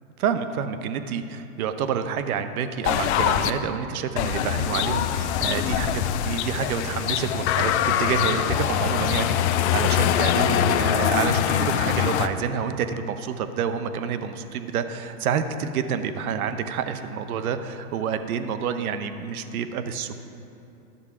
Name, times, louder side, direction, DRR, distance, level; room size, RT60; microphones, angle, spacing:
voice 1, 0.2-5.9 6.2-20.1, right 7 dB, 70° right, 10 dB, 0.8 m, -28 dB
sound 1, 2.8-3.5 4.2-12.3, left 10 dB, 50° left, 0.5 m, -23 dB
12.5 x 6.9 x 4.8 m, 2.9 s
hypercardioid pair, 130°, 45 cm